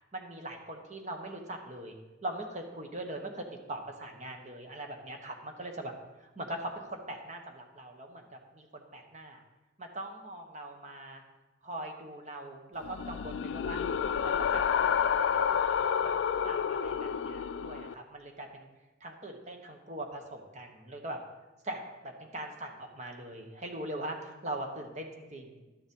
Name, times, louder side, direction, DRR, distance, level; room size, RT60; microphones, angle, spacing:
voice 1, 0.1-5.9 6.2-8.2 8.5-9.4 9.8-11.2 11.6-13.8 14.2-14.6 15.0-18.7 19.0-21.2 21.6-25.6, right 1 dB, 35° right, 3 dB, 1.2 m, -41 dB
sound 1, 12.8-17.9, left 7 dB, 70° left, 0.3 m, -29 dB
11.5 x 7.1 x 5.4 m, 1.1 s
head